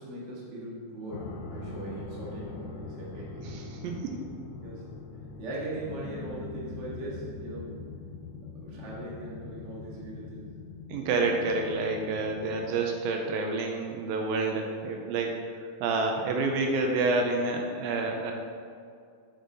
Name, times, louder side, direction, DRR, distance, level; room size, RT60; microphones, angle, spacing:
voice 1, 0.0-3.4 4.6-4.8 5.4-7.7 8.5-10.5, right 1 dB, 55° right, -6 dB, 0.7 m, -40 dB
sound 1, 1.1-12.8, left 4 dB, 80° left, 2.4 m, -42 dB
voice 2, 3.4-4.2 8.7-8.8 10.9-18.3, right 3 dB, 80° right, 2 dB, 2.3 m, -29 dB
8.7 x 5.4 x 4.0 m, 2.3 s
omnidirectional pair, 4.4 m